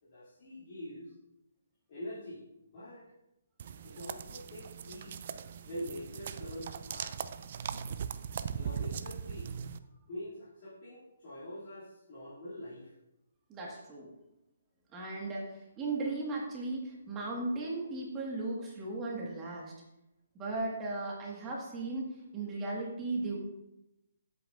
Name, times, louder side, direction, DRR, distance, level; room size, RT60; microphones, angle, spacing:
voice 1, 0.0-1.1 1.9-3.1 3.8-5.3 5.6-7.3 8.5-9.6 10.1-12.9, equal, 45° left, -11 dB, 2.8 m, -45 dB
sound 1, 3.6-9.8, right 7 dB, 50° right, 0.4 m, -40 dB
voice 2, 13.5-14.1 14.9-19.7 20.4-23.4, right 2 dB, 20° right, -3 dB, 1.8 m, -36 dB
10.0 x 8.2 x 2.6 m, 0.90 s
figure-of-eight pair, 135°, 0 cm